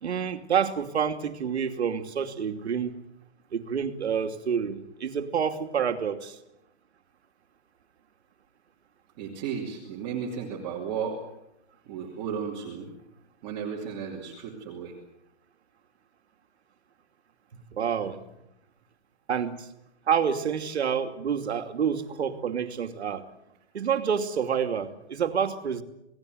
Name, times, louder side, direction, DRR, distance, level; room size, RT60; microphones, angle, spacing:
voice 1, 0.0-2.9 3.5-6.4 17.7-18.2 19.3-19.7 20.1-23.2 23.7-25.8, right 7 dB, 65° right, 7 dB, 2.8 m, -28 dB
voice 2, 9.2-11.2 11.9-12.9 13.4-14.9, right 7 dB, 20° right, -2 dB, 2.8 m, -34 dB
29.0 x 18.5 x 8.0 m, 0.86 s
hypercardioid pair, 175°, 36 cm